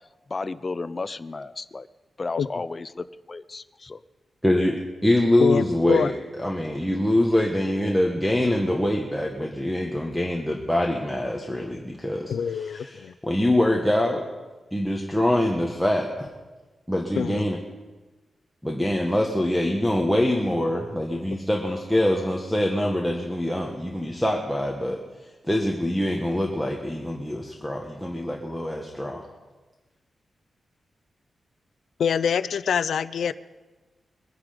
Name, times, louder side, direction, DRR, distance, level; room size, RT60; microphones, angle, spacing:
voice 1, 0.3-1.9 2.2-4.0, left 3 dB, 30° left, 13 dB, 0.5 m, -33 dB
voice 2, 4.4-6.1 6.4-14.3 14.7-16.3 16.9-17.6 18.6-25.0 25.5-29.2, left 1 dB, ahead, -1 dB, 1.2 m, -24 dB
voice 3, 5.4-6.1 12.3-13.1 17.2-17.5 32.0-33.3, left 7 dB, 80° left, 15 dB, 0.5 m, -25 dB
22.0 x 9.7 x 5.1 m, 1.2 s
wide cardioid pair, 145°, 0 cm